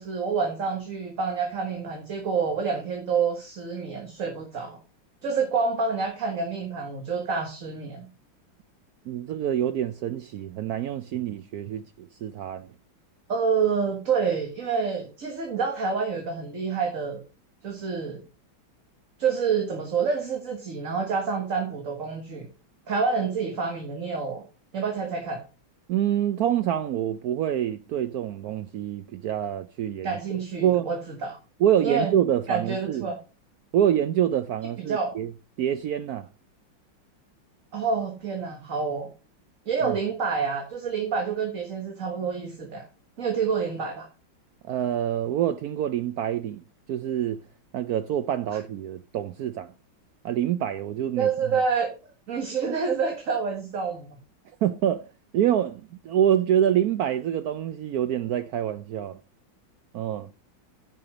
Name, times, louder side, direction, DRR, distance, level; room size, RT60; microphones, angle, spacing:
voice 1, 0.0-4.8 5.2-8.1 13.3-17.2 17.6-18.2 19.2-22.5 22.9-24.4 24.7-25.4 30.0-31.4 31.8-32.1 32.5-33.2 34.9-35.2 37.7-39.1 39.7-42.9 43.2-44.1 51.2-51.9 52.3-54.2, right 5 dB, 45° right, 1.7 m, -28 dB
voice 2, 9.1-12.7 25.9-30.9 31.6-33.1 33.7-35.3 35.6-36.3 39.8-40.0 44.6-46.6 46.9-47.4 47.7-49.7 50.2-51.3 54.6-55.1 55.3-59.2 59.9-60.3, right 10 dB, 75° right, 0.8 m, -26 dB
9.8 x 5.6 x 5.0 m
omnidirectional pair, 2.1 m